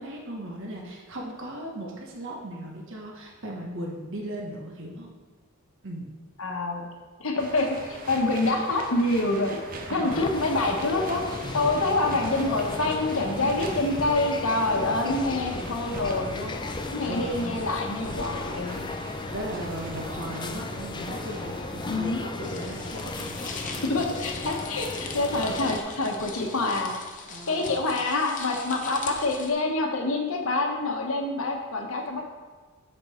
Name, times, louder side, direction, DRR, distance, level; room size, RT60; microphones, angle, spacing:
voice 1, 0.0-5.1 5.8-6.2 9.9-10.2 13.4-13.7 17.1-17.5 19.3-23.8 27.3-27.8, right 1 dB, 60° right, -1 dB, 1.2 m, -37 dB
voice 2, 6.4-6.9 7.2-9.6 9.9-11.2 11.5-16.6 16.9-18.8 21.9-22.2 23.8-26.9 27.5-32.2, left 2 dB, 65° left, 2 dB, 1.0 m, -26 dB
sound 1, 7.4-27.0, right 2 dB, 40° right, 0.8 m, -42 dB
sound 2, 10.1-25.8, left 3 dB, 20° left, 0.4 m, -36 dB
Paper Crumple, 22.4-29.5, left 4 dB, 35° left, 0.8 m, -41 dB
8.0 x 5.4 x 4.3 m, 1.4 s
head